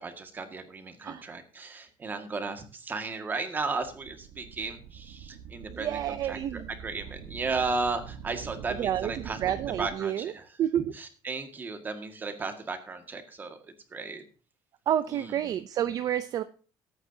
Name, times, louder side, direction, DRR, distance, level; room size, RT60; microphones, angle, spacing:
voice 1, 0.0-9.4 9.8-10.5 10.9-14.2 15.1-15.5, right 4 dB, 20° right, 7 dB, 1.9 m, -35 dB
sound 1, 3.6-9.9, right 8 dB, 80° right, 1.3 m, -44 dB
voice 2, 5.7-6.7 8.8-10.3 10.6-10.9 14.9-16.4, right 10 dB, 40° right, 11 dB, 0.6 m, -29 dB
21.0 x 9.0 x 2.8 m, 0.38 s
cardioid pair, 175°, 9 cm